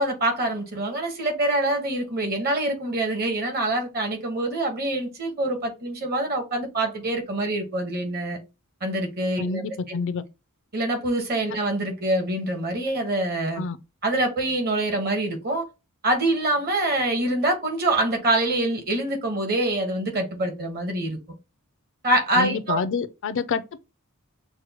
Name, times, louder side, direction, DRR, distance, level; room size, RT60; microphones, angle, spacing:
voice 1, 0.0-8.4 8.8-9.6 9.9-10.0 10.7-13.6 14.0-15.6 16.0-21.2 22.0-22.8, right 1 dB, 45° right, 1.2 m, -25 dB
voice 2, 9.4-10.2 13.6-13.8 22.3-23.8, left 5 dB, 60° left, 0.4 m, -28 dB
6.1 x 2.2 x 2.9 m
head